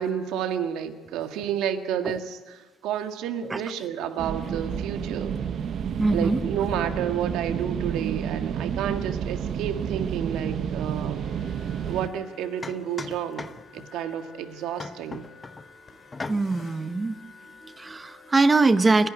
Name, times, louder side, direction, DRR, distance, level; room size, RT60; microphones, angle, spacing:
voice 1, 0.0-5.4 6.1-11.2 11.8-15.2, right 9 dB, 85° right, 7 dB, 1.7 m, -30 dB
sound 1, 4.2-12.1, right 8 dB, 50° right, 0.7 m, -30 dB
voice 2, 5.9-6.4 16.3-17.2 17.6-19.1, right 3 dB, 15° right, 12 dB, 0.8 m, -22 dB
sound 2, 11.1-18.5, left 5 dB, 40° left, 2.5 m, -51 dB
sound 3, 11.8-12.0 12.6-13.9 14.8-15.7 16.1-16.7, left 3 dB, 20° left, 0.8 m, -38 dB
29.5 x 11.5 x 9.7 m, 1.3 s
cardioid pair, 150°, 0 cm